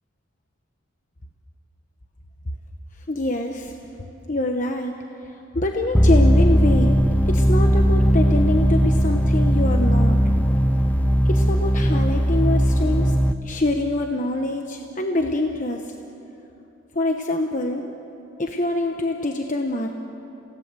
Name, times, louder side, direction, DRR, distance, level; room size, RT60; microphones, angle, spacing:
voice 1, 3.1-3.7 4.3-4.9 5.5-10.2 11.2-13.1 13.4-15.9 16.9-17.9 18.4-20.0, left 1 dB, 40° left, 3 dB, 1.0 m, -25 dB
sound 1, 5.9-13.3, equal, 10° left, 0.6 m, -18 dB
28.5 x 17.5 x 7.6 m, 2.9 s
head